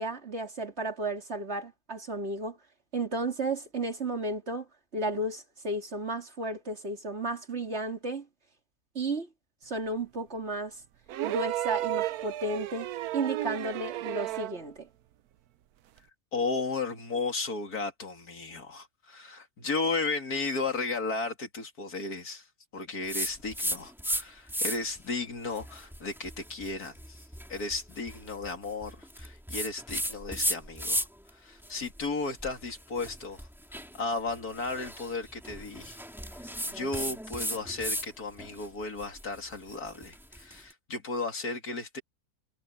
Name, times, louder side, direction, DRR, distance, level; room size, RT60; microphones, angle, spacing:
voice 1, 0.0-2.6 2.9-4.7 4.9-8.3 8.9-9.3 9.6-10.8 11.2-14.9, right 2 dB, 45° right, 3.0 m, -33 dB
sound 1, 11.1-14.6 16.0-16.1, right 14 dB, 80° right, 1.2 m, -33 dB
voice 2, 16.3-22.5 22.7-27.2 27.5-36.0 36.4-42.0, left 3 dB, 80° left, 3.2 m, -34 dB
sound 2, 23.1-24.2 24.5-25.0 25.5-31.3 31.6-38.1 38.4-40.6, equal, ahead, 2.2 m, -35 dB
omnidirectional pair, 1.6 m